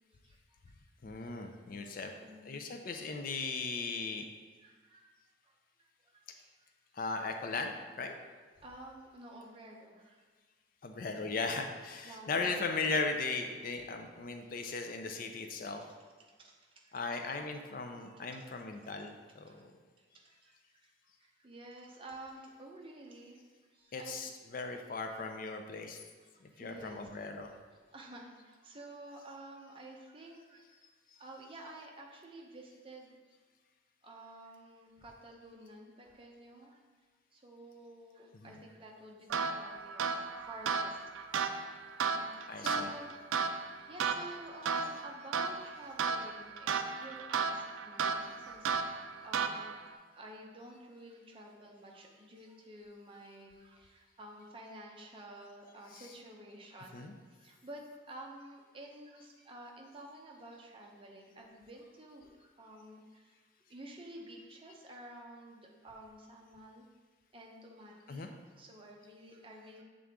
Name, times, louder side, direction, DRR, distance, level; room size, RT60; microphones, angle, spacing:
voice 1, 0.2-0.6 1.4-2.5 3.0-3.2 4.6-5.1 5.4-6.7 8.6-10.2 12.0-12.6 14.4-14.8 15.7-15.9 16.2-17.0 18.0-18.5 19.0-19.1 19.5-19.6 20.0-20.9 21.2-23.4 23.7-24.2 25.1-25.2 26.0-27.3 27.9-30.8 31.2-33.2 34.0-36.8 37.3-41.4 42.0-49.7 50.1-63.4 63.7-66.9 67.3-69.8, right 1 dB, 25° right, 0 dB, 0.7 m, -51 dB
voice 2, 1.0-2.1 2.4-4.2 6.9-8.1 10.8-15.8 16.9-19.7 23.9-26.0 26.4-27.5 38.3-38.6 42.5-42.9 55.9-56.2 56.9-57.1 68.1-68.3, left 4 dB, 45° left, 5 dB, 0.4 m, -37 dB
sound 1, 39.3-49.9, right 5 dB, 80° right, 0.4 m, -35 dB
7.2 x 3.7 x 3.5 m, 1.5 s
head